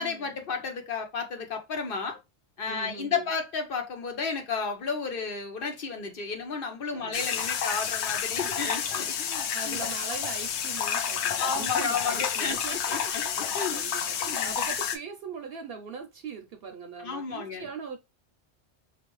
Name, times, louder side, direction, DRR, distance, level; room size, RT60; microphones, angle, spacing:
voice 1, 0.0-2.2 2.6-9.8 11.4-13.8 14.3-14.6 17.0-17.7, left 5 dB, 55° left, 1.0 m, -32 dB
voice 2, 2.7-3.3 6.9-7.5 8.6-8.7 9.5-18.0, right 6 dB, 65° right, 0.8 m, -41 dB
sound 1, 7.1-15.0, left 8 dB, 90° left, 0.9 m, -30 dB
4.3 x 2.5 x 3.0 m
omnidirectional pair, 1.1 m